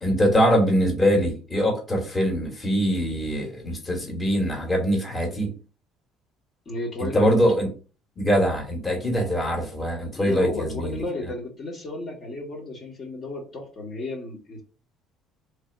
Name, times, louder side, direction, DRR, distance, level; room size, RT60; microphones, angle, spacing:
voice 1, 0.0-5.5 7.0-7.7 8.2-11.0, equal, 25° left, 0 dB, 1.5 m, -23 dB
voice 2, 6.6-7.3 10.2-14.6, left 2 dB, 45° left, -1 dB, 1.4 m, -33 dB
3.4 x 2.7 x 4.0 m, 0.36 s
cardioid pair, 100°, 0 cm